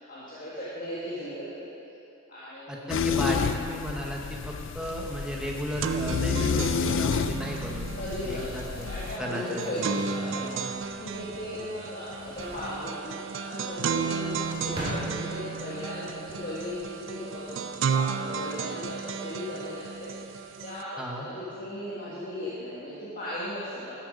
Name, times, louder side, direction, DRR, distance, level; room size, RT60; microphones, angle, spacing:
voice 1, 0.0-1.7 2.3-2.9 7.9-24.0, equal, 40° left, -10 dB, 1.6 m, -37 dB
voice 2, 2.7-7.9 8.2-8.9 9.2-9.8 21.0-21.3, equal, 5° right, -2 dB, 0.9 m, -35 dB
sound 1, 2.9-9.2, left 6 dB, 60° left, 0.3 m, -30 dB
sound 2, 4.9-5.0 5.3-20.8, right 5 dB, 60° right, 0.4 m, -33 dB
sound 3, 9.0-11.7 12.0-12.8 13.9-15.7 16.1-16.8, equal, 25° right, 1.9 m, -40 dB
12.5 x 7.2 x 5.1 m, 2.7 s
head